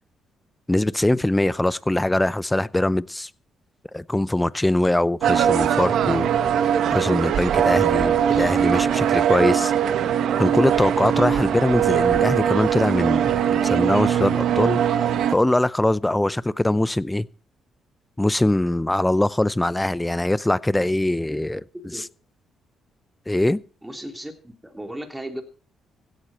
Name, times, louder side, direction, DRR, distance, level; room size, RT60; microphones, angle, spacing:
voice 1, 0.7-3.3 3.9-6.3 6.9-9.7 10.4-14.8 15.3-17.3 18.2-21.6 21.9-22.1 23.3-23.6, left 1 dB, 10° left, 0.6 m, -22 dB
sound 1, 5.2-15.4, right 9 dB, 75° right, 1.1 m, -21 dB
voice 2, 21.3-22.0 23.8-25.4, right 1 dB, 10° right, 3.2 m, -36 dB
16.0 x 11.5 x 4.4 m
cardioid pair, 90°, 0 cm